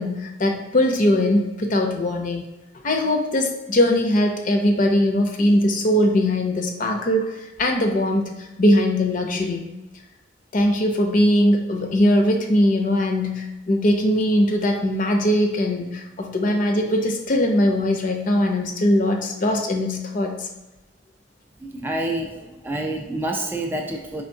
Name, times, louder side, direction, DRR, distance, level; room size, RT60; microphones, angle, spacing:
voice 1, 0.0-2.4 2.8-9.7 10.5-20.5, left 1 dB, 45° left, 3 dB, 0.6 m, -20 dB
voice 2, 21.6-24.2, right 1 dB, 10° right, 1 dB, 0.3 m, -28 dB
4.5 x 3.5 x 2.6 m, 1.0 s
head